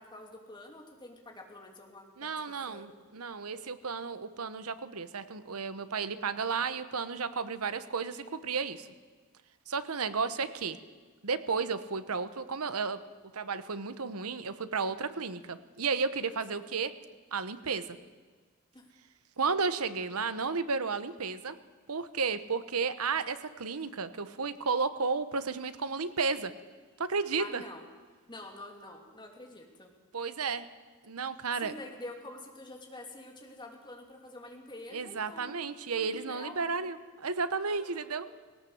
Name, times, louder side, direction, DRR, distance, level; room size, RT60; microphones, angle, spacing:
voice 1, 0.0-2.3 2.7-3.0 8.1-8.4 16.6-16.7 18.7-18.8 27.4-27.9 28.3-29.9 31.6-36.7 37.6-38.4, left 2 dB, 20° left, 2 dB, 2.8 m, -47 dB
voice 2, 2.2-8.9 9.7-10.8 11.2-13.0 13.3-16.9 17.3-18.0 19.4-21.6 21.9-26.5 27.0-27.6 30.1-30.7 31.0-31.7 34.9-38.3, right 5 dB, 85° right, 13 dB, 1.1 m, -33 dB
18.5 x 18.0 x 8.0 m, 1.4 s
head